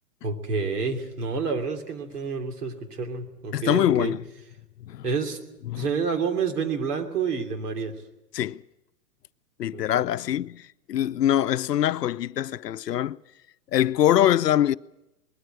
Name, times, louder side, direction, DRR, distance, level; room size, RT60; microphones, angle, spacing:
voice 1, 0.2-4.1 5.0-5.4 5.7-7.9 9.7-10.0, right 5 dB, 75° right, 3.1 m, -29 dB
voice 2, 3.5-4.2 4.8-5.1 5.7-5.9 8.3-8.6 9.6-10.6 10.9-13.2 13.7-14.8, left 11 dB, 80° left, 0.7 m, -23 dB
20.5 x 13.5 x 9.8 m
hypercardioid pair, 115°, 47 cm